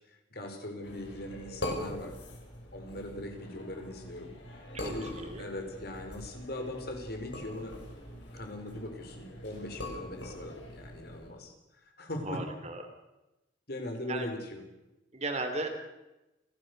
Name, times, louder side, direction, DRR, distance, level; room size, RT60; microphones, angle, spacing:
voice 1, 0.1-2.2 2.7-4.3 4.8-5.1 5.4-7.8 8.3-12.4 13.7-14.6, left 1 dB, 60° left, 4 dB, 4.6 m, -40 dB
sound 1, 0.8-11.3, left 1 dB, 80° left, 6.8 m, -43 dB
voice 2, 4.7-5.5 12.2-12.8 14.1-14.3 15.1-15.7, right 2 dB, 35° right, 6 dB, 3.3 m, -36 dB
29.5 x 14.5 x 6.8 m, 0.97 s
head